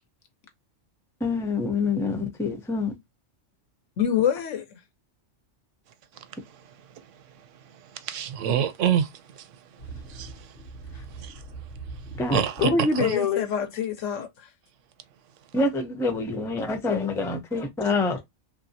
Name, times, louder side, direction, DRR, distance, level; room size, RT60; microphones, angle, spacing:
voice 1, 1.2-2.9 12.2-12.4 15.5-18.2, left 3 dB, 5° left, 0.4 m, -26 dB
voice 2, 4.0-4.6 13.0-14.5, left 9 dB, 80° left, 1.2 m, -26 dB
voice 3, 7.9-9.5 10.1-10.6 11.1-11.4 12.3-12.7 13.0-13.1, right 9 dB, 85° right, 1.0 m, -27 dB
voice 4, 9.8-11.1 11.5-12.2 12.6-13.5, left 3 dB, 50° left, 0.9 m, -28 dB
3.2 x 2.6 x 2.6 m
omnidirectional pair, 1.3 m